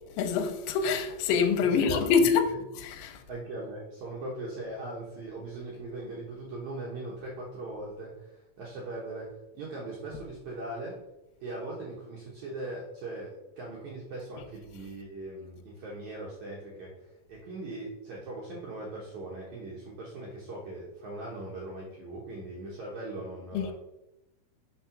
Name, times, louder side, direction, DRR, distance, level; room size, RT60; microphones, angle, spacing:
voice 1, 0.2-2.4 3.0-3.1 23.5-23.7, left 6 dB, 80° left, 2.4 m, -25 dB
voice 2, 1.6-2.6 3.3-11.0 11.4-16.9 17.3-23.7, right 2 dB, 70° right, 1.9 m, -39 dB
5.6 x 4.2 x 5.7 m
omnidirectional pair, 4.7 m